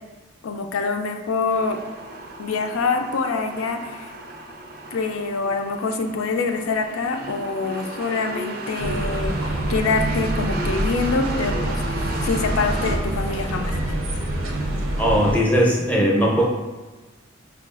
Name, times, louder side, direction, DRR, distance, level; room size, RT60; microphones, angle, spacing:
voice 1, 0.4-1.8 2.4-4.1 4.9-13.8, left 4 dB, 90° left, 6 dB, 0.4 m, -25 dB
sound 1, 1.5-13.0, right 1 dB, 45° right, 0.4 m, -34 dB
sound 2, 8.8-15.4, right 1 dB, 85° right, 0.6 m, -26 dB
voice 2, 15.0-16.4, equal, 10° left, -3 dB, 0.5 m, -19 dB
5.5 x 2.3 x 2.4 m, 1.2 s
head